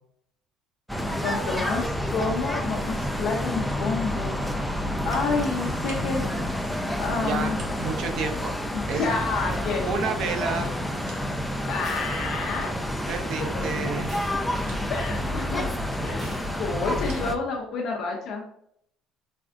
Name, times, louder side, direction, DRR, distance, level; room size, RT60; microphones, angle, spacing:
sound 1, 0.9-17.4, left 1 dB, ahead, 0.3 m, -29 dB
voice 1, 1.2-4.4 5.1-6.3 7.0-7.6 8.7-9.9 11.6-12.7 14.9-15.7 16.0-18.4, left 4 dB, 55° left, 0 dB, 0.5 m, -29 dB
sound 2, 3.7-3.9 4.5-4.6 5.0-5.4 5.6-6.1 7.4-7.9 8.3-8.4 9.5-11.3 11.6-11.7 12.5-13.4 13.8-15.0 15.8-17.3, right 3 dB, 90° right, 0.9 m, -50 dB
voice 2, 7.2-8.6 8.9-9.1 9.8-10.7 13.1-14.1, right 5 dB, 55° right, 6 dB, 0.5 m, -30 dB
sound 3, 9.5-10.3 11.8-13.0 13.4-13.5 14.1-15.0 16.2-17.0, equal, 25° right, 1.0 m, -46 dB
4.2 x 2.4 x 2.4 m, 0.70 s
cardioid pair, 140°, 0 cm